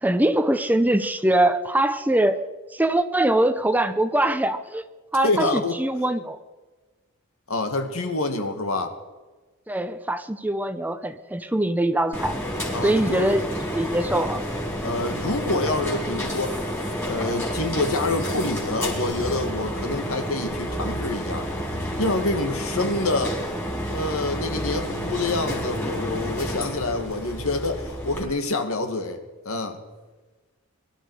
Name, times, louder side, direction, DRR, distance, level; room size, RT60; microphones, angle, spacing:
voice 1, 0.0-2.4 2.7-4.9 5.1-6.4 9.7-12.4 12.8-13.4 13.7-14.4, right 1 dB, 10° right, 10 dB, 0.6 m, -22 dB
voice 2, 5.2-5.8 7.5-8.9 12.7-13.3 14.8-16.6 17.0-21.5 22.0-23.4 23.9-29.2 29.5-29.8, left 2 dB, 75° left, 6 dB, 2.0 m, -27 dB
sound 1, 12.1-28.2, equal, 10° left, 4.2 m, -30 dB
23.0 x 12.5 x 4.8 m, 1.3 s
head